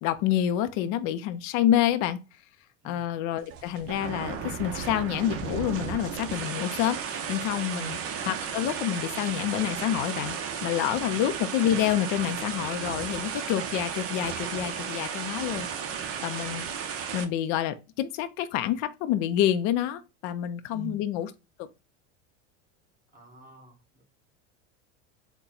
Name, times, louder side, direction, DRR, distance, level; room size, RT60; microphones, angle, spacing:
voice 1, 0.0-2.2 2.8-8.0 8.3-16.7 17.1-21.3 21.6-21.7, left 11 dB, 50° left, 0.5 m, -28 dB
sound 1, 3.4-17.2, right 7 dB, 40° right, 0.8 m, -34 dB
voice 2, 11.1-11.4 20.7-21.0 23.1-24.0, right 4 dB, 20° right, 1.7 m, -45 dB
4.1 x 2.2 x 3.8 m
supercardioid pair, 110°, 36 cm